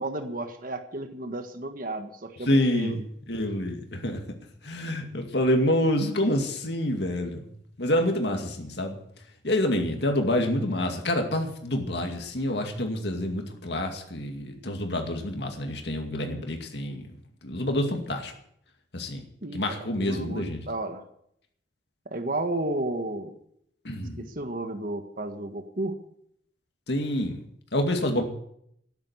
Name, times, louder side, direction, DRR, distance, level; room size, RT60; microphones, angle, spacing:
voice 1, 0.0-3.0 19.4-21.0 22.0-23.3 24.2-25.9, right 2 dB, 50° right, 7 dB, 1.6 m, -33 dB
voice 2, 2.5-2.9 3.3-4.2 4.6-7.4 7.8-9.0 9.4-17.1 17.4-18.3 18.9-19.2 19.5-20.6 23.8-24.3 26.9-27.4 27.7-28.2, left 1 dB, 65° left, 3 dB, 2.3 m, -27 dB
14.0 x 10.5 x 8.1 m, 0.70 s
head